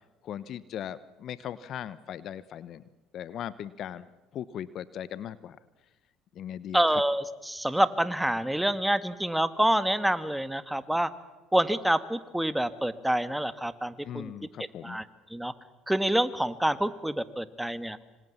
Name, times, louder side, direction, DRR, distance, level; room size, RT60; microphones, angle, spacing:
voice 1, 0.2-2.8 3.1-4.1 4.3-5.6 6.3-7.0 14.0-15.0, left 10 dB, 55° left, 17 dB, 1.0 m, -38 dB
voice 2, 6.7-11.1 11.5-14.3 14.8-15.0 15.3-15.5 15.9-18.0, right 1 dB, 5° right, 12 dB, 1.7 m, -27 dB
26.5 x 26.0 x 7.3 m, 1.1 s
hypercardioid pair, 60°, 0 cm